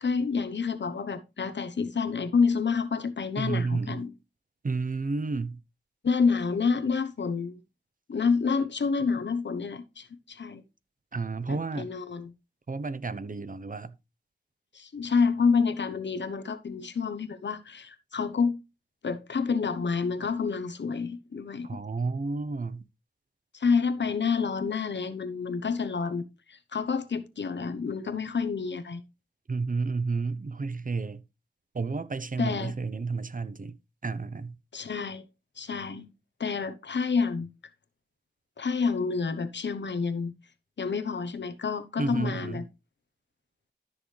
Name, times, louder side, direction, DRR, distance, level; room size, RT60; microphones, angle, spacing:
voice 1, 0.0-4.1 6.0-7.6 8.1-10.6 11.5-12.3 14.7-18.6 19.0-21.7 23.5-29.0 32.4-32.7 34.7-35.2 35.6-36.1 36.4-37.5 38.6-40.3 40.8-42.6, left 5 dB, 90° left, 1.0 m, -28 dB
voice 2, 3.4-4.0 4.6-5.6 11.1-11.9 12.7-13.9 21.6-22.8 29.5-31.2 31.7-33.8 34.0-34.6 42.0-42.6, right 4 dB, 50° right, 0.9 m, -31 dB
13.0 x 6.3 x 3.3 m
wide cardioid pair, 60°, 18 cm